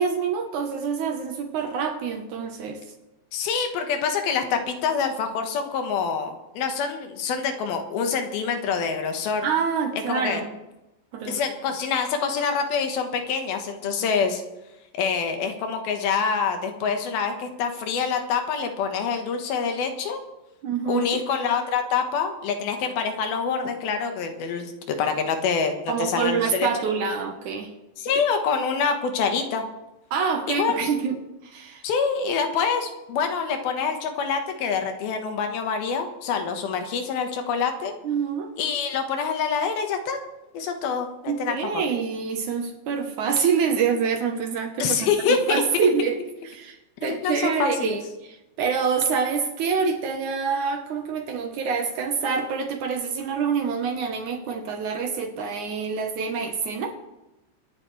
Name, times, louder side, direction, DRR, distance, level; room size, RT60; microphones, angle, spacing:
voice 1, 0.0-2.8 9.4-10.6 11.1-11.4 20.6-21.2 25.9-27.7 30.1-31.8 38.0-38.5 41.3-46.2 46.4-57.0, right 6 dB, 65° right, 5 dB, 2.2 m, -26 dB
voice 2, 3.3-9.5 10.1-10.4 11.3-14.4 14.9-20.2 20.9-25.7 26.0-26.7 28.0-29.7 30.5-30.9 31.8-37.9 38.6-40.2 40.5-41.8 44.8-45.9 47.0-48.0, left 6 dB, 80° left, 5 dB, 3.2 m, -26 dB
25.0 x 10.5 x 3.3 m, 0.98 s
omnidirectional pair, 4.3 m